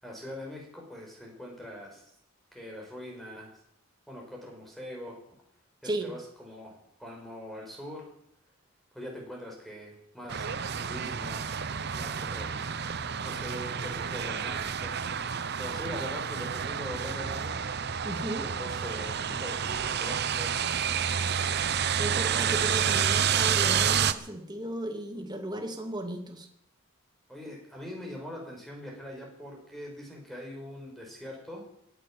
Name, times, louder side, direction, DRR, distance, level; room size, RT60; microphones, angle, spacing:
voice 1, 0.0-2.0 2.5-3.5 4.1-5.2 5.8-8.1 8.9-11.4 11.9-12.5 13.2-14.9 15.6-17.7 18.5-20.6 27.3-31.6, left 1 dB, ahead, -1 dB, 5.9 m, -42 dB
sound 1, 10.3-24.1, right 7 dB, 50° right, 0.8 m, -29 dB
voice 2, 18.0-18.5 22.0-26.5, right 1 dB, 20° right, 5 dB, 2.3 m, -35 dB
17.0 x 11.0 x 7.7 m, 0.72 s
head